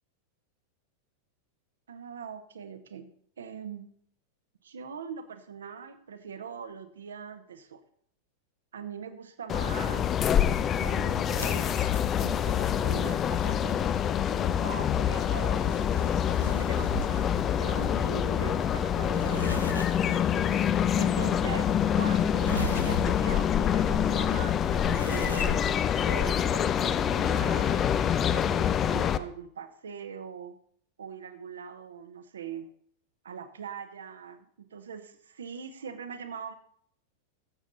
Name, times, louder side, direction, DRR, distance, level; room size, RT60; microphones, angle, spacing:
voice 1, 1.9-3.1 3.4-3.9 4.6-7.8 8.7-10.1 10.7-11.7 12.2-13.8 14.1-16.0 16.4-20.2 21.0-25.6 26.1-27.9 28.3-30.5 31.0-32.7 33.2-36.5, right 7 dB, 65° right, 10 dB, 1.0 m, -41 dB
sound 1, 9.5-29.2, left 9 dB, 25° left, 0.5 m, -26 dB
sound 2, 11.3-25.8, right 1 dB, 90° left, 1.0 m, -42 dB
14.0 x 7.4 x 4.0 m, 0.64 s
figure-of-eight pair, 90°, 0 cm